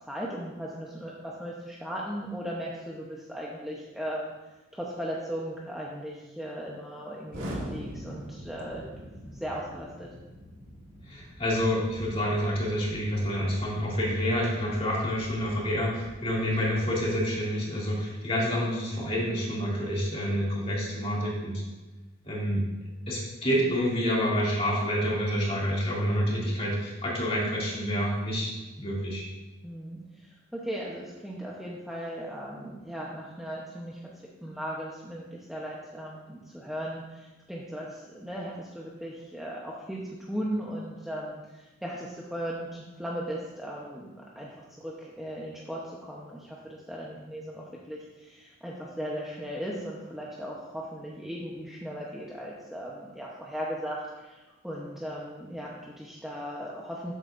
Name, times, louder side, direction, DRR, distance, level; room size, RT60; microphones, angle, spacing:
voice 1, 0.1-4.3 4.7-10.1 29.6-34.0 34.4-40.0 40.3-57.1, equal, ahead, -5 dB, 0.8 m, -37 dB
Explosion, 7.3-17.2, equal, 85° right, 1.8 m, -44 dB
voice 2, 11.1-21.6 22.2-22.6 23.1-29.2, equal, 30° left, -5 dB, 2.4 m, -28 dB
12.0 x 8.0 x 2.6 m, 1.1 s
head